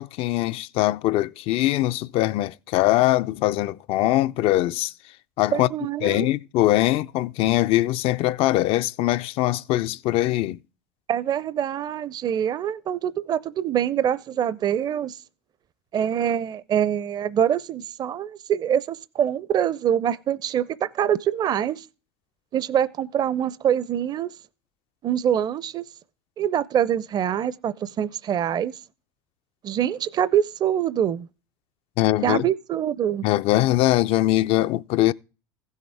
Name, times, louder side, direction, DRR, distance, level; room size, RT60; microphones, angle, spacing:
voice 1, 0.0-4.9 5.4-5.7 6.0-10.6 32.0-32.5 33.2-35.1, left 15 dB, 45° left, 0.4 m, -22 dB
voice 2, 5.5-6.3 11.1-15.2 15.9-21.9 22.5-24.3 25.0-25.9 26.4-28.8 29.6-31.3 32.2-33.3, right 9 dB, 30° right, 0.5 m, -24 dB
16.0 x 6.4 x 3.5 m
hypercardioid pair, 80°, 13 cm